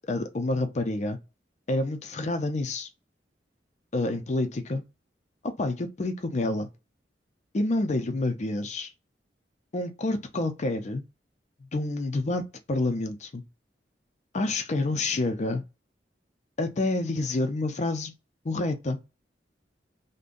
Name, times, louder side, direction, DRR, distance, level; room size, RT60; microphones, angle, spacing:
voice 1, 0.1-1.2 1.7-2.9 3.9-4.8 5.6-6.7 7.5-8.9 9.7-11.0 11.6-12.4 12.7-13.4 14.3-15.6 16.6-18.1 18.4-19.0, left 2 dB, 40° left, 0.5 m, -28 dB
2.5 x 2.2 x 3.6 m
head